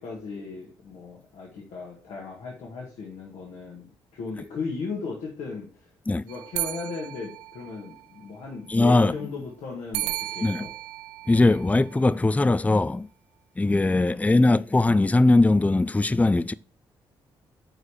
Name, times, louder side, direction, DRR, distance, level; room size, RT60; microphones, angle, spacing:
voice 1, 0.0-3.8 4.1-5.9 6.2-10.7 14.0-14.2, left 4 dB, 70° left, 2.0 m, -36 dB
sound 1, 6.3-8.2 9.9-12.3, right 17 dB, 80° right, 0.4 m, -35 dB
voice 2, 8.7-9.1 10.4-10.7 11.3-13.1 13.6-16.5, left 2 dB, 10° left, 0.5 m, -20 dB
8.9 x 4.8 x 6.6 m
hypercardioid pair, 45°, 12 cm